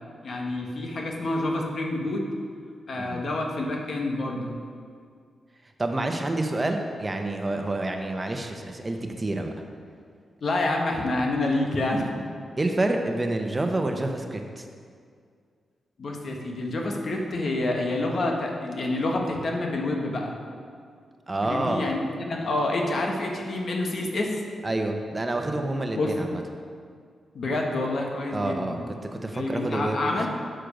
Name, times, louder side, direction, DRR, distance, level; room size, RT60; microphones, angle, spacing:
voice 1, 0.2-2.3 2.9-4.5 10.4-12.2 16.0-20.3 21.4-24.4 25.9-26.2 27.3-28.8 29.3-30.3, left 2 dB, 60° left, 1 dB, 1.3 m, -28 dB
voice 2, 5.8-9.5 12.6-14.7 21.3-21.9 24.6-26.4 28.3-28.8 29.1-30.0, right 2 dB, 30° right, 4 dB, 0.9 m, -28 dB
7.8 x 6.6 x 5.2 m, 2.1 s
cardioid pair, 60°, 0 cm